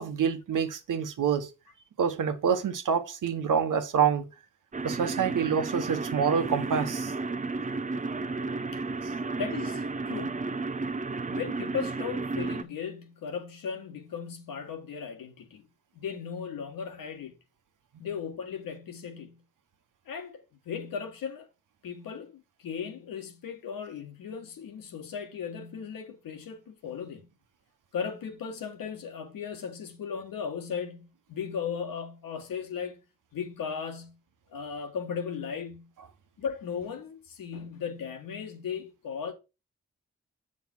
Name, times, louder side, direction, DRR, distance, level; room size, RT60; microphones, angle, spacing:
voice 1, 0.0-1.5 2.0-4.3 4.8-7.1, right 7 dB, 65° right, 1.2 m, -27 dB
sound 1, 4.7-12.6, right 3 dB, 25° right, 0.6 m, -33 dB
voice 2, 9.4-10.5 11.3-15.7 15.9-17.3 18.0-19.4 20.1-21.5 21.8-27.3 27.9-33.0 33.3-34.2 34.5-35.9 36.4-39.3, left 6 dB, 80° left, 1.6 m, -37 dB
7.6 x 5.0 x 4.4 m
supercardioid pair, 40°, 33 cm